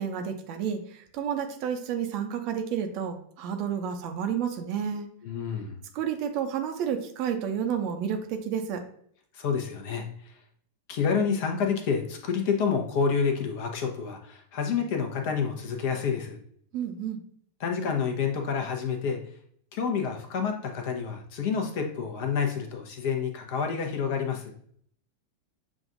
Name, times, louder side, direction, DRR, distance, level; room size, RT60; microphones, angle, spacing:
voice 1, 0.0-5.1 5.9-8.8 16.7-17.2, right 8 dB, 45° right, 5 dB, 0.6 m, -30 dB
voice 2, 5.2-5.8 9.3-10.3 10.9-16.4 17.6-19.2 19.7-24.5, left 6 dB, 50° left, 3 dB, 0.9 m, -28 dB
7.2 x 2.5 x 2.5 m, 0.63 s
figure-of-eight pair, 90°, 0 cm